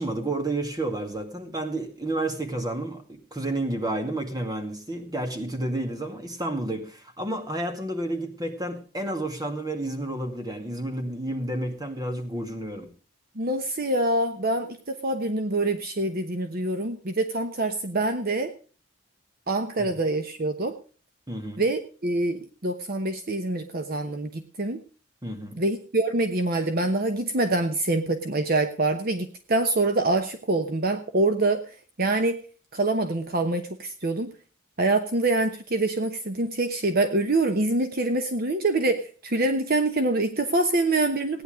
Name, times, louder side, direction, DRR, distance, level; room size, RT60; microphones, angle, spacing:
voice 1, 0.0-12.9 19.8-19.9 21.3-21.6 25.2-25.6, right 1 dB, 20° right, 2.2 m, -31 dB
voice 2, 13.4-18.5 19.5-20.8 21.6-24.8 25.6-31.6 32.0-32.4 32.7-34.3 34.8-41.4, right 2 dB, 50° right, 1.0 m, -25 dB
17.0 x 10.0 x 5.0 m
head